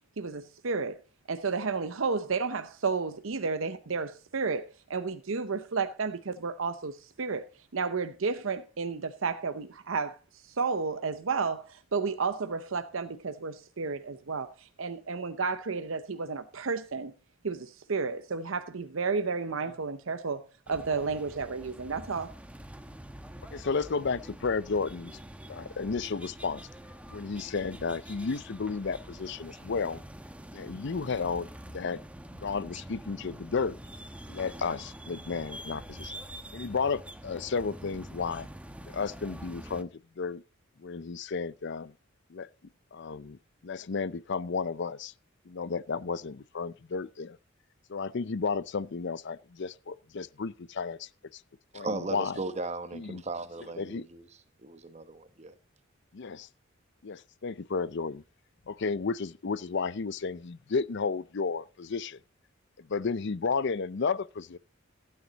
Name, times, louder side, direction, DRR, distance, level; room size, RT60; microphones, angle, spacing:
voice 1, 0.2-1.0 1.3-7.5 7.7-17.1 17.4-22.3, right 4 dB, 75° right, 0.7 m, -32 dB
sound 1, 20.7-39.8, right 1 dB, 5° right, 1.0 m, -46 dB
voice 2, 23.5-25.2 25.5-26.6 27.1-30.0 30.5-32.0 32.4-33.8 34.3-36.2 36.5-38.5 38.9-39.9 40.2-40.4 40.8-41.9 42.3-42.5 42.9-45.1 45.5-47.4 47.9-51.4 51.7-52.4 52.9-53.2 53.8-54.0 56.1-56.5 57.0-58.2 58.7-62.2 62.8-64.6, left 5 dB, 60° left, 0.6 m, -33 dB
voice 3, 51.7-54.3 54.6-55.5, right 2 dB, 35° right, 1.2 m, -37 dB
15.5 x 9.5 x 4.0 m
head